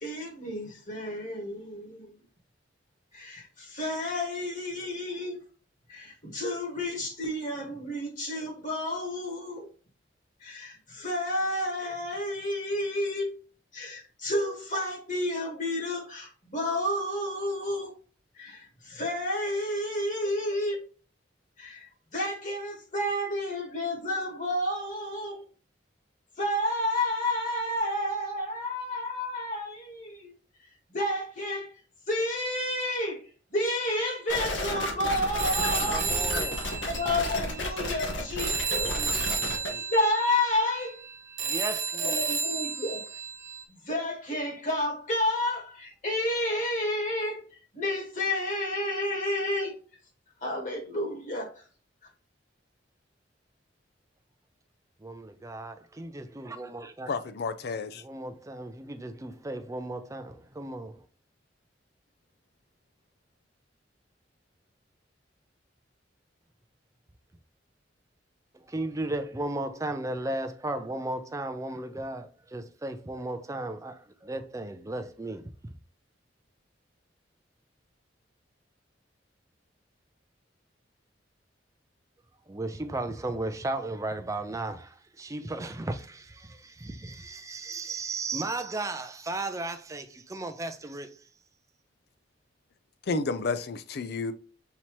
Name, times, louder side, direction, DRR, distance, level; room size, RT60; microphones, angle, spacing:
voice 1, 0.0-2.2 3.1-5.4 5.9-9.7 10.4-13.3 13.7-17.9 18.3-20.8 21.6-25.4 26.4-30.3 30.9-31.7 32.1-33.2 33.5-36.5 37.0-38.9 39.3-39.4 39.9-41.0 41.6-43.0 43.7-47.4 47.7-49.8 50.4-51.6, left 1 dB, 45° left, 1.6 m, -30 dB
sound 1, 34.3-39.7, left 1 dB, 80° left, 1.1 m, -32 dB
Telephone, 35.4-38.1 38.4-43.6, right 5 dB, 75° right, 0.9 m, -32 dB
voice 2, 35.9-36.6 38.9-39.9 41.4-42.2 55.0-57.1 58.0-61.0 68.5-75.7 82.5-91.1, right 2 dB, 15° right, 0.5 m, -35 dB
voice 3, 57.1-58.0 93.1-94.3, left 4 dB, 60° left, 0.4 m, -31 dB
5.8 x 2.8 x 3.0 m
head